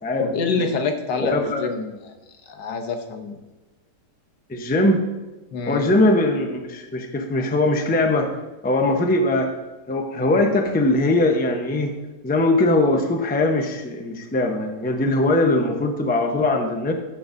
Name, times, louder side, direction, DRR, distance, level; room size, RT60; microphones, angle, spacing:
voice 1, 0.2-2.1 2.5-3.4 5.5-5.9, left 4 dB, 85° left, 6 dB, 1.6 m, -26 dB
voice 2, 1.2-1.6 4.5-5.0 5.6-8.3 8.6-9.5 9.9-11.9 12.2-16.9, left 2 dB, 10° left, 3 dB, 0.4 m, -21 dB
15.0 x 7.0 x 2.6 m, 1.1 s
omnidirectional pair, 1.8 m